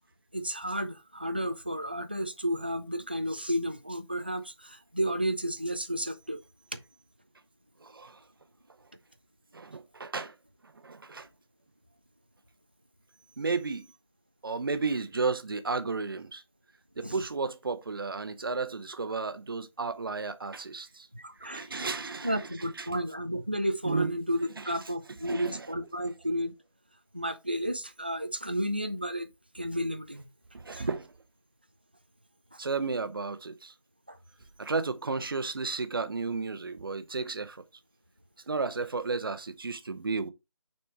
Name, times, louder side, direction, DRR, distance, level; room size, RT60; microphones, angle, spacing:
voice 1, 0.3-6.4 17.0-17.2 21.1-21.6 22.2-26.5 27.1-29.3 29.5-30.3 30.7-30.9 32.5-32.6 34.1-34.2, equal, 20° right, 0.3 m, -32 dB
voice 2, 7.8-8.2 9.5-10.3 10.8-11.3 13.4-13.9 14.4-16.4 17.0-21.1 21.4-22.4 22.8-22.9 23.8-24.1 24.6-24.7 25.2-25.7 30.5-31.1 32.6-33.7 34.6-37.6 38.5-40.3, right 4 dB, 45° right, 0.8 m, -33 dB
5.9 x 4.3 x 4.5 m
figure-of-eight pair, 160°, 16 cm